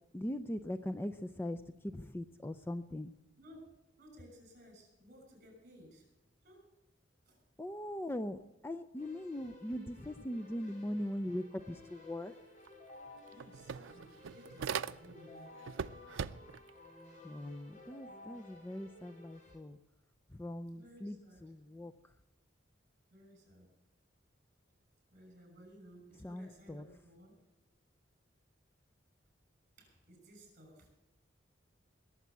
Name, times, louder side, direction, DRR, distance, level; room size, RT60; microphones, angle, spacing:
voice 1, 0.1-3.1 7.6-12.3 17.2-19.8 20.3-22.1 26.2-26.9, left 1 dB, 10° left, 10 dB, 0.4 m, -41 dB
voice 2, 4.0-6.1 6.4-6.6 7.2-7.4 13.2-15.6 20.7-21.4 23.1-23.7 25.1-27.3 29.8-30.9, equal, 45° right, 2 dB, 6.5 m, -57 dB
Keyboard (musical), 9.0-19.6, left 2 dB, 40° left, 4.4 m, -55 dB
sound 1, 12.7-12.8 13.1-15.3 15.6-16.7, right 6 dB, 90° right, 0.5 m, -40 dB
20.5 x 7.3 x 8.1 m, 0.94 s
head